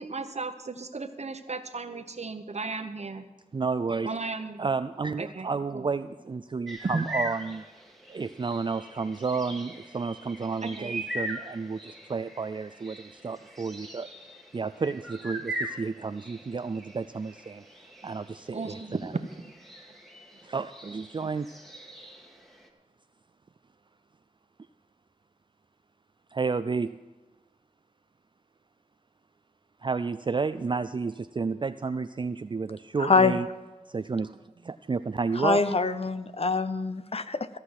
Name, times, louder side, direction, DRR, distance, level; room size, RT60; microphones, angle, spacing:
voice 1, 0.0-3.3 4.0-4.7 5.2-5.5 5.7-5.9 6.9-7.1 10.6-10.9 18.5-19.5, right 3 dB, 60° right, 9 dB, 1.0 m, -35 dB
voice 2, 3.5-4.1 4.6-7.6 8.1-14.1 14.5-17.6 18.0-18.8 20.4-21.6 26.3-27.0 29.8-33.5 33.9-35.6, right 4 dB, 40° right, 11 dB, 0.3 m, -31 dB
sound 1, 6.7-22.7, equal, ahead, 1.6 m, -41 dB
voice 3, 33.0-33.4 35.4-37.5, left 4 dB, 50° left, 12 dB, 0.6 m, -24 dB
15.0 x 5.9 x 7.9 m, 1.2 s
wide cardioid pair, 55°, 13 cm